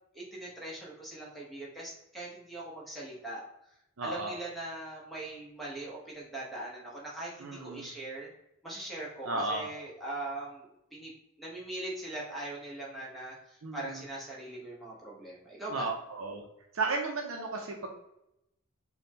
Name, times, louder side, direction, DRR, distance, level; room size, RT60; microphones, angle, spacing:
voice 1, 0.1-3.4 4.0-8.3 8.6-11.1 11.4-15.9, right 2 dB, ahead, -6 dB, 1.1 m, -41 dB
voice 2, 4.0-4.3 7.4-7.9 9.2-9.7 13.6-14.0 15.7-16.4 16.7-17.9, right 3 dB, 75° right, 0 dB, 0.7 m, -34 dB
5.3 x 2.3 x 2.8 m, 0.82 s
head